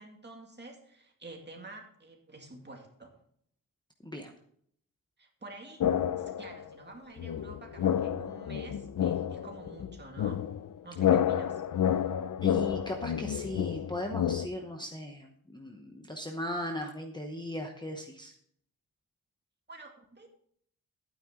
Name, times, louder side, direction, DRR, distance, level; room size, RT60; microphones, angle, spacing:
voice 1, 0.0-3.1 5.2-5.9 6.2-10.5 10.8-11.6 19.7-20.4, right 2 dB, 30° right, 1 dB, 2.2 m, -49 dB
sound 1, 5.8-6.6 7.2-14.5, left 9 dB, 60° left, 0.5 m, -30 dB
voice 2, 12.4-18.3, left 1 dB, 10° left, 2 dB, 0.9 m, -38 dB
11.5 x 9.4 x 3.7 m, 0.65 s
wide cardioid pair, 175°, 36 cm